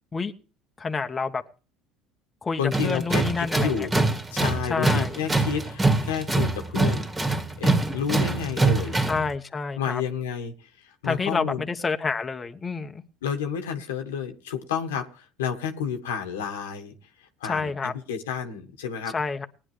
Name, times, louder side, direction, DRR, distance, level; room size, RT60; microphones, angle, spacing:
voice 1, 0.8-1.4 2.4-3.9 4.7-5.2 9.1-10.0 11.0-13.0 17.4-17.9 19.1-19.5, left 4 dB, 25° left, 6 dB, 1.2 m, -28 dB
voice 2, 2.6-4.0 4.3-7.1 7.6-9.0 9.8-10.5 11.0-11.6 13.2-16.9 17.4-19.1, left 7 dB, 90° left, 5 dB, 1.5 m, -30 dB
Tools, 2.7-9.3, right 2 dB, 20° right, 2.2 m, -24 dB
19.0 x 10.0 x 3.3 m, 0.34 s
hypercardioid pair, 75°, 0 cm